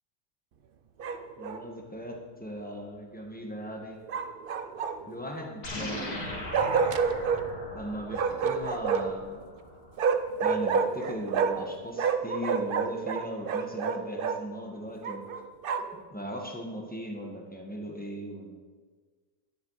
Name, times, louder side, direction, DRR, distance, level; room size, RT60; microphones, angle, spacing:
Bark, 1.0-1.6 4.1-5.2 6.5-7.4 8.1-9.2 10.0-11.7 12.0-14.4 15.0-16.0, right 6 dB, 85° right, 0.4 m, -28 dB
voice 1, 1.4-4.0 5.1-6.4 7.7-9.4 10.4-15.3 15.9-18.7, equal, 5° left, 1 dB, 1.5 m, -38 dB
sound 1, 5.6-10.3, left 1 dB, 60° left, 2.8 m, -39 dB
11.0 x 10.5 x 4.9 m, 1.5 s
omnidirectional pair, 1.8 m